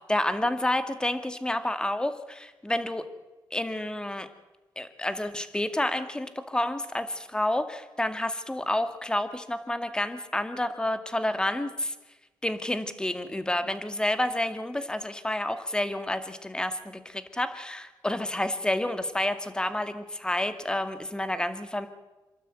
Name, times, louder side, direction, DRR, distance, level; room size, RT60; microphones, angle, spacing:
voice 1, 0.1-3.1 3.5-4.3 4.8-11.9 12.4-21.9, left 1 dB, 10° left, 9 dB, 2.1 m, -29 dB
27.5 x 12.5 x 9.1 m, 1.1 s
cardioid pair, 85°, 8 cm